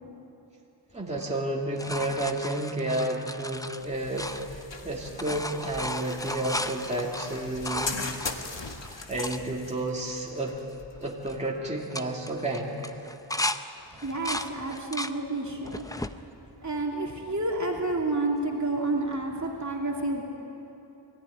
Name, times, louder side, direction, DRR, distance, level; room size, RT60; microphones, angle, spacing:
voice 1, 0.9-8.0 8.8-10.6 11.0-12.8, right 1 dB, 15° right, -3 dB, 2.6 m, -31 dB
sound 1, 1.1-4.8 5.1-9.4 10.0-10.1 10.3-10.7 11.0-11.4 11.8-13.6 14.0-15.2 15.7-16.2 16.8-17.5 19.1-19.2, left 1 dB, 10° left, 0.5 m, -35 dB
sound 2, 3.8-11.7, left 4 dB, 65° left, 1.8 m, -40 dB
voice 2, 14.0-15.9 16.6-20.2, right 2 dB, 35° right, -1 dB, 2.7 m, -29 dB
22.0 x 14.5 x 10.0 m, 2.9 s
wide cardioid pair, 95°, 47 cm